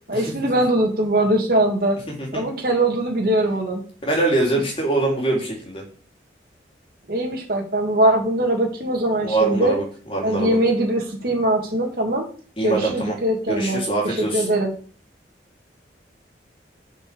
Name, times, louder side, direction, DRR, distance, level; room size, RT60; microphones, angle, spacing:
voice 1, 0.1-2.0 2.3-3.8 7.1-9.8 10.2-12.3 12.6-14.7, right 1 dB, 55° right, 0 dB, 2.1 m, -21 dB
voice 2, 4.0-5.8 9.2-10.6 12.6-13.2 13.5-14.4, right 2 dB, 30° left, -1 dB, 3.4 m, -23 dB
7.0 x 5.7 x 6.8 m, 0.41 s
head